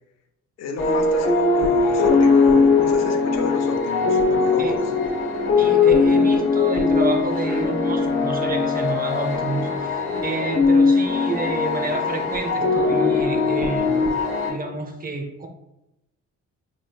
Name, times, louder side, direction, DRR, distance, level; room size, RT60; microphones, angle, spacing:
voice 1, 0.6-4.9, left 4 dB, 60° left, 5 dB, 0.6 m, -33 dB
sound 1, 0.8-14.5, left 4 dB, 45° left, 1.2 m, -20 dB
voice 2, 5.6-14.0 14.5-15.5, right 3 dB, 30° right, 4 dB, 0.6 m, -29 dB
4.4 x 3.2 x 2.3 m, 0.91 s
cardioid pair, 90°, 30 cm